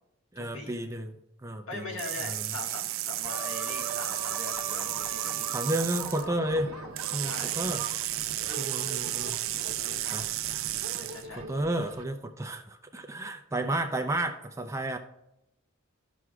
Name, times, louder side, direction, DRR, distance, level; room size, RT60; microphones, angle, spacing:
voice 1, 0.3-2.5 5.5-6.8 7.1-7.8 8.6-9.4 10.1-10.3 11.3-15.0, right 1 dB, 15° right, 5 dB, 0.5 m, -32 dB
voice 2, 1.7-5.5 7.2-7.6 8.4-8.7 9.8-10.3 10.8-11.4, left 3 dB, 65° left, 0 dB, 1.6 m, -41 dB
sound 1, 2.0-6.2 7.0-11.3, right 15 dB, 65° right, 0.4 m, -33 dB
sound 2, 3.2-12.0, right 3 dB, 85° right, 0.8 m, -42 dB
sound 3, 3.3-8.0, left 1 dB, 5° left, 0.9 m, -45 dB
14.5 x 6.1 x 2.3 m, 0.87 s
head